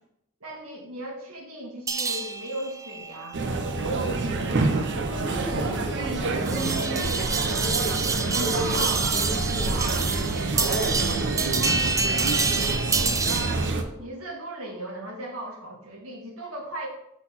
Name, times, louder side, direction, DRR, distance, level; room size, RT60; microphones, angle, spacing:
voice 1, 0.4-3.4 3.7-4.5 8.6-9.0 9.7-10.0 10.5-13.6 14.0-16.9, right 1 dB, 75° right, -1 dB, 1.9 m, -38 dB
sound 1, 1.9-13.7, right 4 dB, 15° right, 0.4 m, -29 dB
sound 2, 3.3-13.8, right 3 dB, 55° right, 0.8 m, -27 dB
voice 2, 5.1-8.9 9.1-9.8, equal, 15° left, -3 dB, 1.9 m, -35 dB
6.0 x 4.0 x 6.0 m, 0.81 s
head